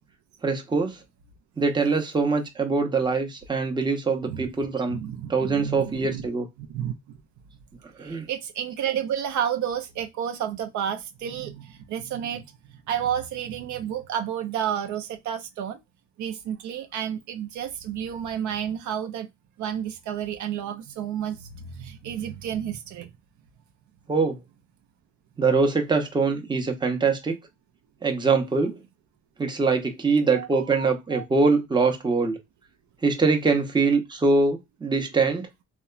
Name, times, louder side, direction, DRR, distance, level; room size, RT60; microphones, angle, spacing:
voice 1, 0.4-1.0 1.6-5.0 5.3-6.5 8.0-8.3 24.1-24.4 25.4-27.4 28.0-28.8 29.4-32.4 33.0-35.5, right 4 dB, 15° right, 0.7 m, -23 dB
voice 2, 4.9-6.3 6.7-6.9 8.0-12.4 12.9-15.8 16.2-19.3 19.6-23.1 30.4-31.2, right 9 dB, 70° right, 0.5 m, -31 dB
2.8 x 2.1 x 2.3 m
cardioid pair, 90°, 30 cm